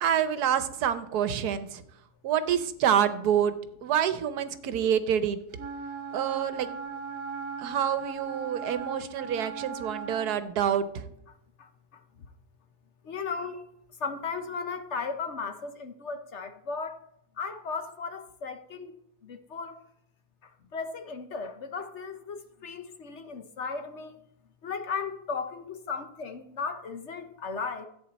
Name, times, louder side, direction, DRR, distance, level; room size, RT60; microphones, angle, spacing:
voice 1, 0.0-1.8 2.2-3.5 3.8-5.4 6.1-6.7 7.6-11.1, right 9 dB, 85° right, 1.3 m, -27 dB
Wind instrument woodwind instrument, 5.6-10.4, right 5 dB, 65° right, 1.6 m, -38 dB
voice 2, 13.1-13.6 14.0-17.0 17.4-18.9 19.2-19.8 20.7-24.2 24.6-27.9, left 5 dB, 55° left, 1.1 m, -35 dB
14.0 x 8.5 x 4.1 m
omnidirectional pair, 1.6 m